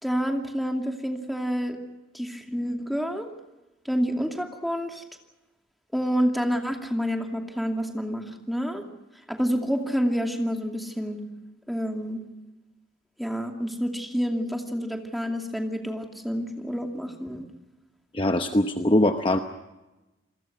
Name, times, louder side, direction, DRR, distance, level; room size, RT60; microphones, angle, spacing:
voice 1, 0.0-1.8 2.1-3.3 3.8-5.0 5.9-8.8 9.3-11.2 11.7-12.2 13.2-17.5, equal, ahead, 3 dB, 2.5 m, -28 dB
voice 2, 18.1-19.4, left 1 dB, 25° left, 6 dB, 0.9 m, -22 dB
28.5 x 21.5 x 5.9 m, 1.0 s
head